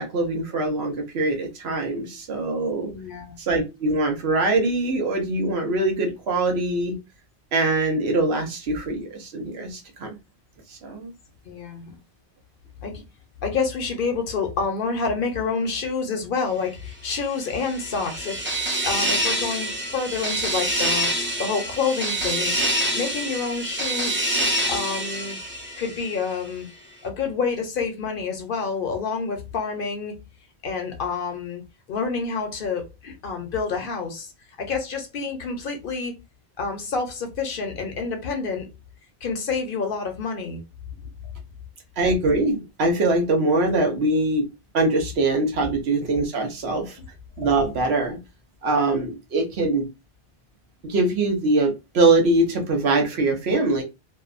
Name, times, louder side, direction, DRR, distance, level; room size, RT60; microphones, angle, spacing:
voice 1, 0.0-2.9 3.4-7.0 7.5-10.1 10.7-11.1 42.0-44.5 44.7-47.0 47.4-48.2 48.6-49.9 50.8-53.8, right 2 dB, 75° right, 1.0 m, -23 dB
voice 2, 2.9-3.4 11.5-12.0 12.8-13.0 13.4-18.4 18.8-21.1 21.4-24.3 24.7-25.4 25.8-26.7 27.0-30.1 30.6-31.6 31.9-34.3 34.6-36.1 36.6-38.7 39.2-40.6 45.6-45.7 47.0-47.1, left 5 dB, 60° left, 0.7 m, -28 dB
sound 1, 17.2-26.3, right 1 dB, 20° right, 0.3 m, -26 dB
2.7 x 2.2 x 2.4 m
omnidirectional pair, 1.1 m